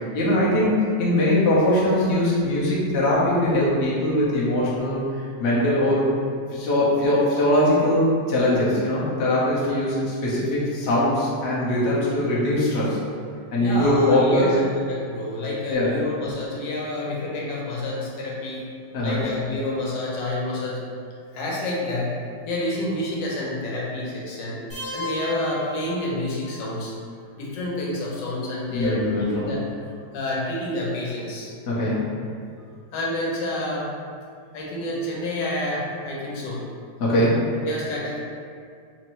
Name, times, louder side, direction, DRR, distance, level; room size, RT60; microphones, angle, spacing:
voice 1, 0.1-5.0 5.4-6.1 6.5-13.0 13.5-14.5 15.7-15.9 18.9-19.2 28.7-29.5 31.7-32.0 37.0-37.4, left 1 dB, 50° left, -7 dB, 0.9 m, -21 dB
voice 2, 13.6-18.7 19.0-20.8 21.3-22.1 22.5-24.6 24.9-26.9 27.4-29.6 30.1-31.5 32.9-33.9 34.5-36.6 37.6-38.2, left 1 dB, 90° left, -4 dB, 1.5 m, -29 dB
sound 1, 24.7-26.7, left 2 dB, 30° left, 0.5 m, -35 dB
4.4 x 2.6 x 3.0 m, 2.2 s
omnidirectional pair, 1.9 m